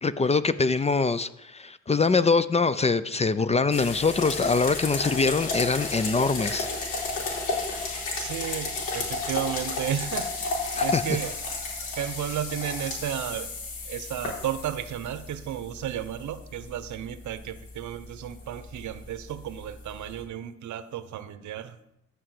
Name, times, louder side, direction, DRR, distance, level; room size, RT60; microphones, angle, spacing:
voice 1, 0.0-6.7 10.8-11.0, left 4 dB, 20° left, 14 dB, 0.5 m, -24 dB
sound 1, 3.7-20.2, left 3 dB, 80° left, 4.0 m, -33 dB
voice 2, 8.1-13.5 13.8-21.8, right 10 dB, 75° right, 13 dB, 0.9 m, -33 dB
12.5 x 5.0 x 7.7 m, 0.83 s
cardioid pair, 90°, 30 cm